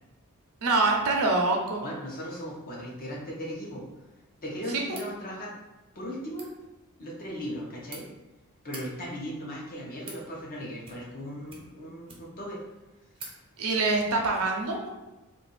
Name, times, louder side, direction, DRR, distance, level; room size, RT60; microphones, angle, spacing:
voice 1, 0.6-1.8 13.6-14.9, right 3 dB, 70° right, 1 dB, 0.6 m, -25 dB
voice 2, 1.8-3.8 4.4-5.5 5.9-6.5 7.0-8.0 8.6-12.6, equal, 40° left, -4 dB, 0.9 m, -37 dB
sound 1, 4.9-5.1 6.2-6.5 7.5-8.0 8.6-8.8 9.6-10.2 10.8-11.2 11.5-12.4 12.8-12.9 13.1-13.4, right 3 dB, 25° right, 0.6 m, -45 dB
2.6 x 2.4 x 3.9 m, 1.1 s
head